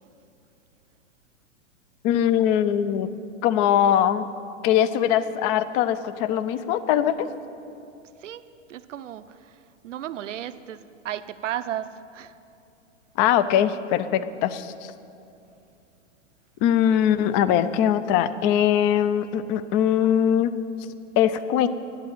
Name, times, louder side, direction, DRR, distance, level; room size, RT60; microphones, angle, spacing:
voice 1, 2.0-3.1 3.4-4.3 4.6-7.3 13.2-14.9 16.6-20.5 21.2-21.7, left 10 dB, 25° left, 14 dB, 0.4 m, -21 dB
voice 2, 8.2-12.3, right 11 dB, 75° right, 13 dB, 0.7 m, -35 dB
11.5 x 8.4 x 9.0 m, 2.7 s
hypercardioid pair, 125°, 37 cm